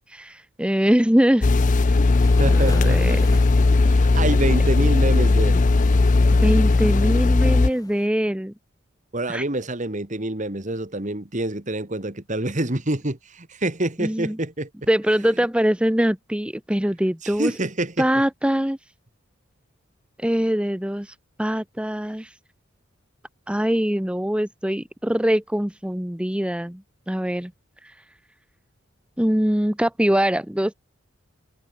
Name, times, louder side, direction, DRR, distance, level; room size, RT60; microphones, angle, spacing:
voice 1, 0.0-1.5 1.8-2.2 2.5-3.2 6.4-8.5 9.3-9.4 14.0-14.4 14.9-17.5 18.0-18.8 20.2-22.4 23.5-27.5 27.8-28.0 29.2-30.7, equal, 5° right, 0.7 m, -23 dB
sound 1, 1.4-7.7, left 3 dB, 35° left, 0.5 m, -17 dB
Waves surf, 2.1-8.1, left 2 dB, 15° left, 3.8 m, -44 dB
voice 2, 2.4-3.4 3.8-5.6 9.1-14.7 17.2-18.1, right 1 dB, 35° right, 1.9 m, -27 dB
head